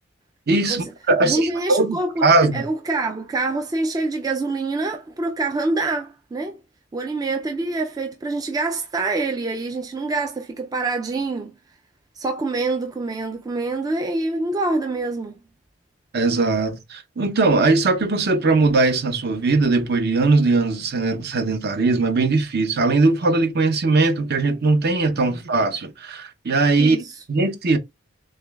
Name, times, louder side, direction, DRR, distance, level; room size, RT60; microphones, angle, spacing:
voice 1, 0.5-2.0 2.2-2.6 16.1-27.0 27.3-27.8, right 3 dB, 55° right, 0.7 m, -20 dB
voice 2, 1.2-6.6 6.9-11.5 12.2-15.4 25.3-25.4 26.8-27.1, right 3 dB, 20° right, 0.3 m, -26 dB
6.3 x 2.2 x 2.3 m
head